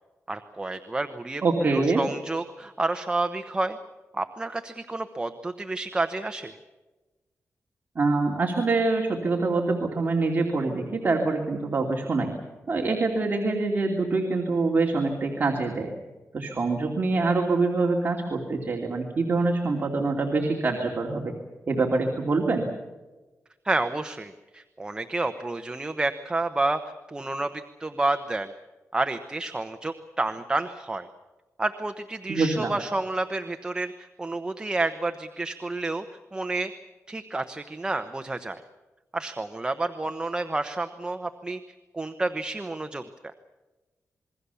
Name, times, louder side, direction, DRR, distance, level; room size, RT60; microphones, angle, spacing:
voice 1, 0.3-3.8 4.1-6.6 23.6-26.8 27.1-28.5 28.9-31.1 31.6-36.0 36.3-36.7 37.1-38.6 39.1-41.6 41.9-43.0, right 2 dB, 15° right, 7 dB, 1.0 m, -30 dB
voice 2, 1.4-2.0 7.9-12.4 12.7-15.9 16.3-21.3 21.7-22.7 32.3-32.7, right 3 dB, 35° right, 0 dB, 2.8 m, -25 dB
28.0 x 22.0 x 7.0 m, 1.2 s
wide cardioid pair, 155°, 5 cm